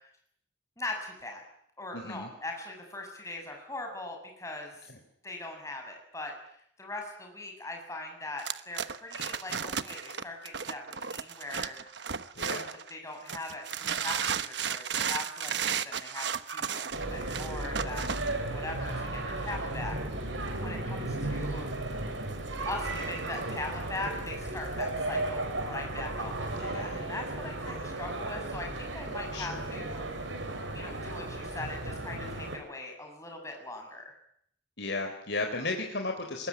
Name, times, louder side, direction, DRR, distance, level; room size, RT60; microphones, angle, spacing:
voice 1, 0.8-1.4 1.8-4.9 5.2-6.3 6.8-11.8 12.4-20.0 20.6-21.7 22.7-30.5 30.7-34.1, left 2 dB, 15° left, 2 dB, 7.2 m, -41 dB
voice 2, 1.9-2.3 4.9-5.0 12.4-12.8 26.5-27.0 27.7-27.8 29.3-29.6 34.8-36.5, left 2 dB, 65° left, 3 dB, 4.0 m, -35 dB
sound 1, 8.4-12.9 13.3-18.3, right 7 dB, 65° right, 1.2 m, -34 dB
sound 2, 16.9-32.6, right 2 dB, 85° right, 6.7 m, -35 dB
24.5 x 21.5 x 9.7 m, 0.68 s
head